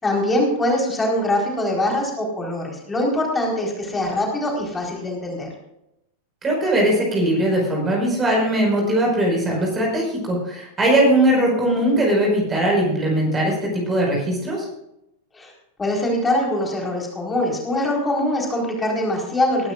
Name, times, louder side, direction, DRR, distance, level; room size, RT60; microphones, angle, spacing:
voice 1, 0.0-5.5 15.3-15.5 15.8-19.7, left 1 dB, 15° left, -1 dB, 4.4 m, -23 dB
voice 2, 6.4-14.7, right 1 dB, 20° right, -1 dB, 5.3 m, -20 dB
20.5 x 13.0 x 2.5 m, 0.85 s
figure-of-eight pair, 90°, 0 cm